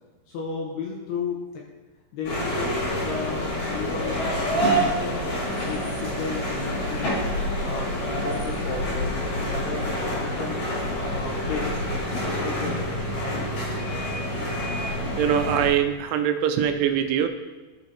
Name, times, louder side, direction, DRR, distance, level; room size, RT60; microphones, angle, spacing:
voice 1, 0.3-1.6 2.1-5.3 5.6-7.1 7.6-12.0 12.3-13.6, left 5 dB, 80° left, -2 dB, 2.4 m, -34 dB
sound 1, 2.2-15.7, equal, 55° left, 3.4 m, -27 dB
voice 2, 15.2-17.3, right 8 dB, 85° right, 8 dB, 3.1 m, -22 dB
12.5 x 5.8 x 2.8 m, 1.2 s
omnidirectional pair, 5.6 m